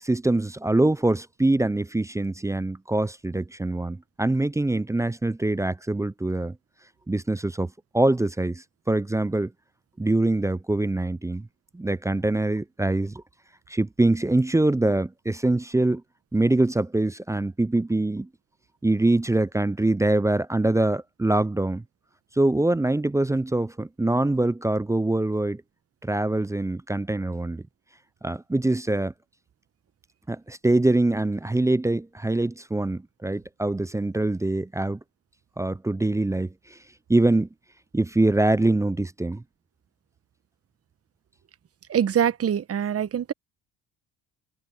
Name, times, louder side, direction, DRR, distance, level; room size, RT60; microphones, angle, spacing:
voice 1, 0.0-6.6 7.1-9.5 10.0-11.5 11.7-13.2 13.7-16.0 16.3-18.3 18.8-21.8 22.4-25.6 26.0-27.6 28.2-29.1 30.3-35.0 35.6-36.8 37.1-37.5 37.9-39.4, right 2 dB, 10° right, 0.5 m, -24 dB
voice 2, 41.9-43.3, right 9 dB, 35° right, 1.1 m, -24 dB
hypercardioid pair, 65°, 38 cm